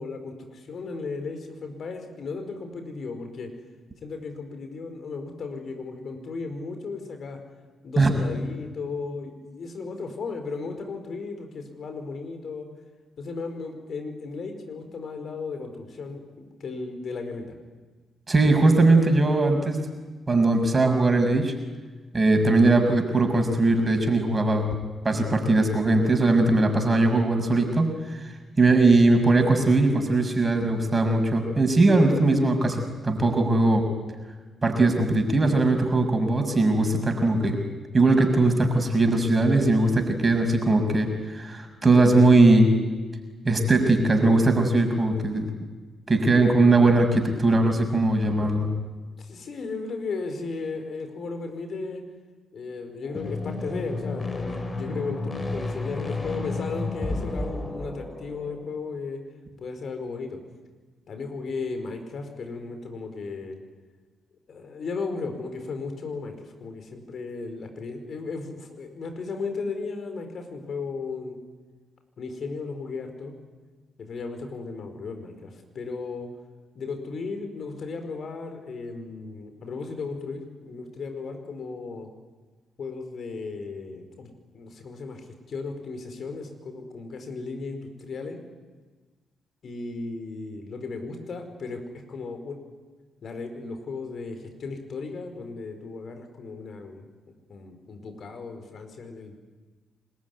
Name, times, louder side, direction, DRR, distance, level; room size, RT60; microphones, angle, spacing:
voice 1, 0.0-3.5 4.0-7.4 7.8-12.7 13.2-17.5 49.2-52.0 52.5-59.2 59.6-60.4 61.1-63.6 64.5-71.4 72.2-73.4 74.0-76.3 76.7-82.1 82.8-88.4 89.6-91.8 92.1-92.6 93.2-97.1 97.5-99.4, left 4 dB, 55° left, 6 dB, 5.1 m, -35 dB
voice 2, 18.3-19.8 20.3-21.5 22.1-24.7 25.0-33.9 34.6-37.6 37.9-42.8 43.4-45.5 46.1-48.7, right 2 dB, 30° right, 5 dB, 6.2 m, -20 dB
sound 1, 53.1-58.7, left 2 dB, 35° left, 6.4 m, -32 dB
25.5 x 21.0 x 9.7 m, 1.3 s
hypercardioid pair, 40°, 0 cm